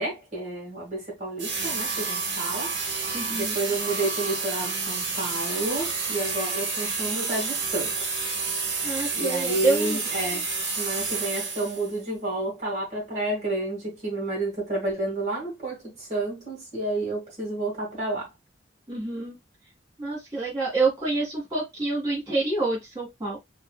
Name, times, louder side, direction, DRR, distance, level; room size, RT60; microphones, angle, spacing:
voice 1, 0.0-2.7 3.3-8.3 9.2-18.3, right 2 dB, 40° right, 2.1 m, -30 dB
sound 1, 1.4-12.0, right 4 dB, 75° right, 1.4 m, -29 dB
voice 2, 3.1-3.6 8.8-10.0 18.9-19.4 20.0-23.4, right 3 dB, 20° right, 2.3 m, -27 dB
4.5 x 2.8 x 2.3 m
head